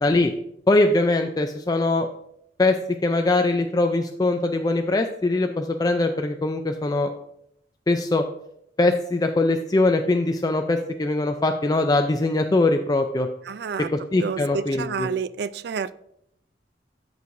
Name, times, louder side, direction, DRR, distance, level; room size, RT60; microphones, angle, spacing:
voice 1, 0.0-0.3 0.7-2.1 2.6-2.8 3.0-7.1 7.9-8.2 8.8-13.3 13.9-15.1, left 2 dB, 20° left, 5 dB, 0.3 m, -22 dB
voice 2, 13.5-13.9 14.2-16.0, right 6 dB, 65° right, 16 dB, 0.3 m, -29 dB
13.5 x 4.7 x 2.6 m, 0.76 s
head